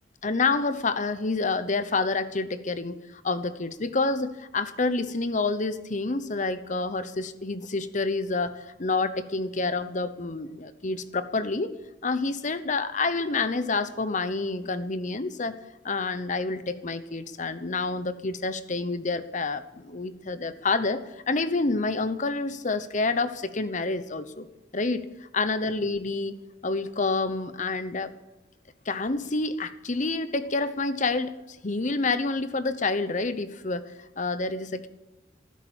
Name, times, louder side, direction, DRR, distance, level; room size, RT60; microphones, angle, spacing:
voice 1, 0.2-11.7 12.0-15.6 15.8-24.5 24.7-25.1 25.3-28.1 28.9-34.9, left 3 dB, 45° left, 13 dB, 0.9 m, -28 dB
15.5 x 13.0 x 7.3 m, 1.0 s
head